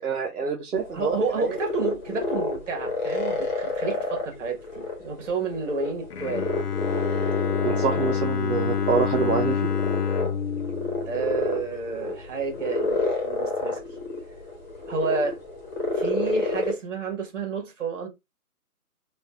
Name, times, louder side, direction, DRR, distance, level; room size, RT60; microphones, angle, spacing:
voice 1, 0.0-1.6 7.6-9.6, right 5 dB, 70° right, 0.8 m, -26 dB
sound 1, 0.7-16.7, left 2 dB, 30° left, 1.2 m, -30 dB
voice 2, 0.9-6.6 11.1-13.8 14.9-15.4 15.9-18.1, right 4 dB, 50° right, 1.5 m, -30 dB
Bowed string instrument, 6.1-12.1, left 7 dB, 90° left, 0.6 m, -28 dB
3.2 x 2.6 x 2.3 m
figure-of-eight pair, 150°, 46 cm